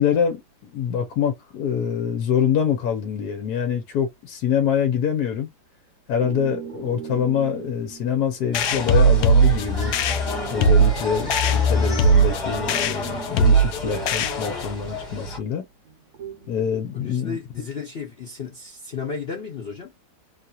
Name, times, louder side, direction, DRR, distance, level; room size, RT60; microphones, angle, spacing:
voice 1, 0.0-5.5 6.1-10.0 10.5-15.6 16.5-17.4, left 8 dB, 65° left, 1.1 m, -25 dB
sound 1, 6.2-15.1 15.8-17.2, right 8 dB, 50° right, 1.1 m, -40 dB
sound 2, 8.5-14.7, right 3 dB, 80° left, 0.8 m, -20 dB
sound 3, 8.5-15.4, left 4 dB, 25° left, 1.2 m, -28 dB
voice 2, 17.0-19.9, left 5 dB, 50° left, 0.8 m, -33 dB
3.1 x 2.7 x 2.3 m
omnidirectional pair, 2.1 m